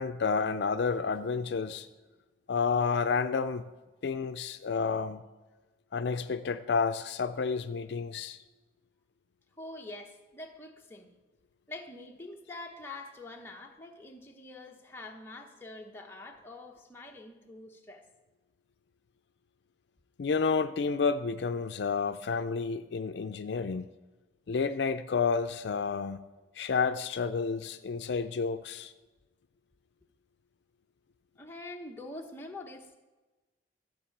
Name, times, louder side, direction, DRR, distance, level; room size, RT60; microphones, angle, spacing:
voice 1, 0.0-1.9 2.5-3.6 4.0-5.2 5.9-8.4 20.2-23.9 24.5-26.2 26.6-28.9, left 5 dB, 70° left, 0.4 m, -30 dB
voice 2, 9.6-11.1 11.7-18.1 31.4-33.0, left 2 dB, 15° left, 1.0 m, -45 dB
13.0 x 4.9 x 7.3 m
head